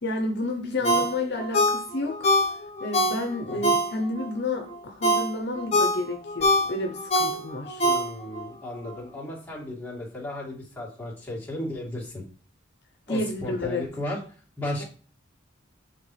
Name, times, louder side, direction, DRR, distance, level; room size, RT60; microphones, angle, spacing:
voice 1, 0.0-2.3 2.8-7.8 13.1-13.8 14.8-14.9, left 2 dB, 55° left, 3 dB, 0.8 m, -30 dB
Ringtone, 0.8-4.3 4.7-8.5 8.8-8.9, equal, 35° left, 1.1 m, -24 dB
voice 2, 3.5-3.8 7.8-12.2 13.1-14.2 14.6-14.8, left 1 dB, 10° left, -5 dB, 2.3 m, -35 dB
7.8 x 4.0 x 3.3 m, 0.41 s
head